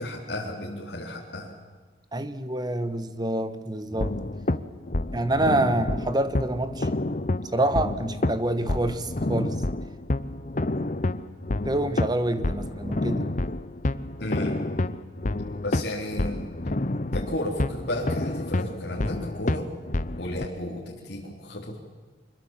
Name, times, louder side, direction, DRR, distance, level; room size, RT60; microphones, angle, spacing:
voice 1, 0.0-1.5 14.2-14.6 15.6-16.4 17.1-19.7 20.2-21.8, left 1 dB, 60° left, 3.7 m, -33 dB
voice 2, 2.1-4.2 5.1-6.9 7.5-9.6 11.6-13.3, right 1 dB, 25° right, 1.4 m, -27 dB
sound 1, 3.9-20.5, left 2 dB, 45° left, 0.9 m, -29 dB
25.0 x 21.5 x 7.5 m
head